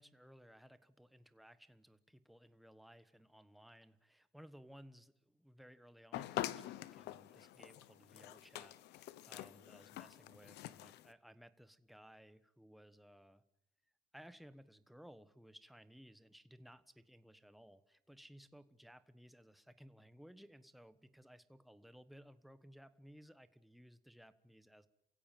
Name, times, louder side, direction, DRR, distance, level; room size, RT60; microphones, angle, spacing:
voice 1, 0.0-13.4 14.1-24.9, equal, ahead, 12 dB, 1.3 m, -60 dB
sound 1, 6.1-11.1, left 15 dB, 80° left, 1.0 m, -46 dB
28.5 x 16.0 x 9.2 m, 0.83 s
cardioid pair, 110°, 17 cm